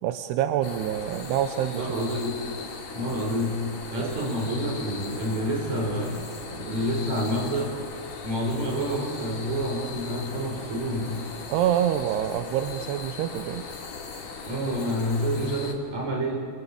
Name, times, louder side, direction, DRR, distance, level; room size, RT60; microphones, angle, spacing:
voice 1, 0.0-2.1 4.0-4.3 11.5-13.7, right 11 dB, 85° right, 9 dB, 3.0 m, -27 dB
sound 1, 0.6-15.7, left 5 dB, 55° left, 4.1 m, -39 dB
voice 2, 1.7-2.4 2.9-7.7 8.2-11.2 14.5-16.4, equal, 45° right, 1 dB, 6.1 m, -28 dB
29.5 x 23.0 x 8.7 m, 2.1 s
omnidirectional pair, 4.6 m